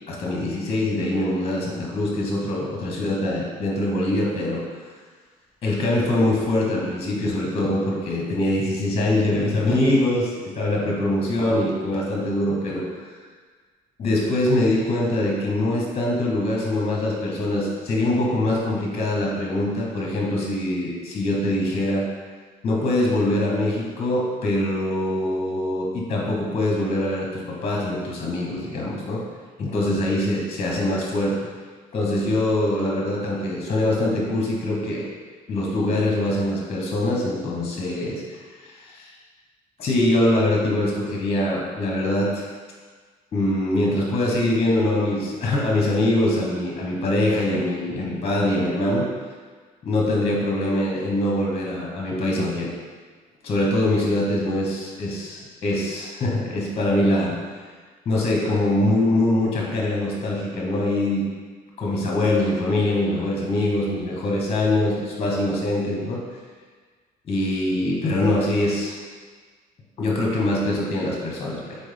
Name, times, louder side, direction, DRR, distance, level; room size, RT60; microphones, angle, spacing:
voice 1, 0.1-4.6 5.6-12.8 14.0-22.0 22.6-29.2 29.6-31.4 31.9-35.0 35.5-39.1 39.8-42.4 43.3-49.1 49.8-52.7 53.4-57.3 58.0-61.2 61.8-66.2 67.3-68.9 70.0-71.8, left 1 dB, 35° left, -2 dB, 1.0 m, -23 dB
4.1 x 3.5 x 3.4 m, 1.5 s
cardioid pair, 110°, 17 cm